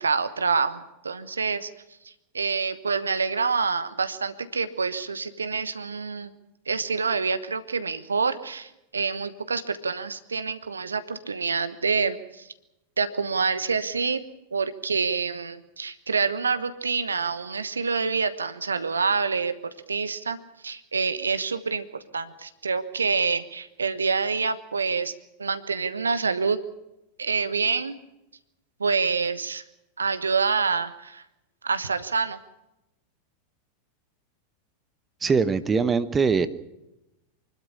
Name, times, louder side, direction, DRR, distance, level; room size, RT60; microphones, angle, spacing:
voice 1, 0.0-1.7 2.0-6.3 6.7-12.5 13.0-14.2 14.5-20.4 20.6-21.9 22.1-25.1 25.4-26.6 27.2-27.9 28.8-29.6 30.0-31.2 31.6-32.4, right 5 dB, 75° right, 12 dB, 1.2 m, -27 dB
voice 2, 35.2-36.5, right 5 dB, 15° right, 14 dB, 1.1 m, -22 dB
25.0 x 12.5 x 9.9 m, 0.91 s
figure-of-eight pair, 90°, 0 cm